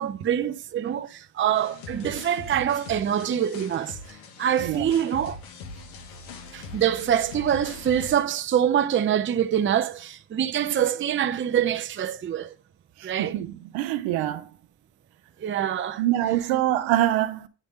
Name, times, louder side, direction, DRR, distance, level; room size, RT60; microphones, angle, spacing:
voice 1, 0.0-4.0 4.4-5.4 6.5-12.5 13.0-13.3 15.4-16.0, right 9 dB, 25° right, 0.6 m, -25 dB
sound 1, 1.5-8.2, left 4 dB, 85° left, 1.4 m, -41 dB
voice 2, 13.0-14.5 16.0-17.5, right 13 dB, 75° right, 1.0 m, -25 dB
9.4 x 3.4 x 5.1 m
supercardioid pair, 75°, 46 cm